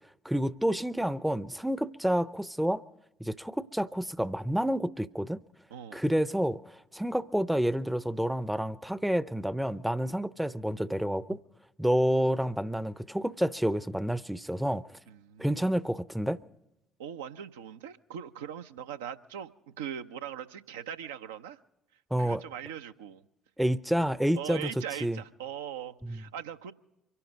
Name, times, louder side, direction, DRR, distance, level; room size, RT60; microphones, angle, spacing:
voice 1, 0.2-2.8 3.2-5.4 5.9-11.4 11.8-14.9 15.4-16.4 22.1-22.4 23.6-24.7 25.0-25.2 26.0-26.2, equal, 5° right, 0.6 m, -29 dB
voice 2, 5.7-6.0 11.3-11.4 15.1-15.8 17.0-19.5 19.8-21.6 22.2-23.2 24.0-24.1 24.3-26.7, right 9 dB, 75° right, 0.5 m, -40 dB
24.5 x 11.5 x 5.2 m
figure-of-eight pair, 50°, 0 cm